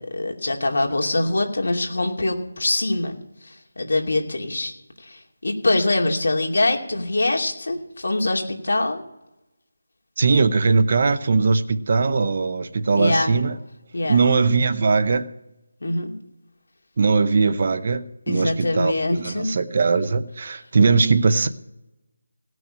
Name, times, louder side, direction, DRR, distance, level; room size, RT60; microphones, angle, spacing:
voice 1, 0.0-3.1 3.4-4.7 5.0-9.0 12.9-13.3 13.9-14.2 15.8-16.1 18.3-19.6, left 2 dB, 65° left, 2.6 m, -23 dB
voice 2, 10.2-13.6 14.0-15.3 17.0-21.5, right 4 dB, 35° right, 0.7 m, -20 dB
17.5 x 6.2 x 8.8 m
figure-of-eight pair, 170°, 0 cm